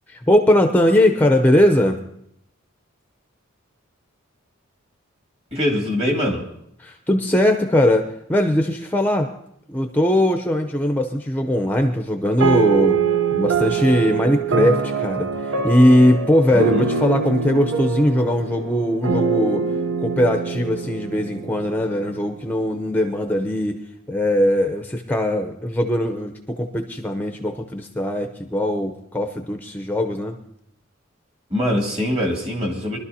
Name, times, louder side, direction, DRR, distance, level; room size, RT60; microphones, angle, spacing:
voice 1, 0.1-2.0 6.8-9.3 9.7-13.0 13.3-19.6 20.0-23.8 24.1-30.4, left 1 dB, 10° left, 5 dB, 0.6 m, -20 dB
voice 2, 5.5-6.4 16.5-16.8 31.5-33.0, left 1 dB, 30° right, 1 dB, 2.3 m, -23 dB
sound 1, 12.4-22.1, right 5 dB, 65° right, 0.8 m, -24 dB
23.5 x 12.0 x 2.8 m, 0.74 s
head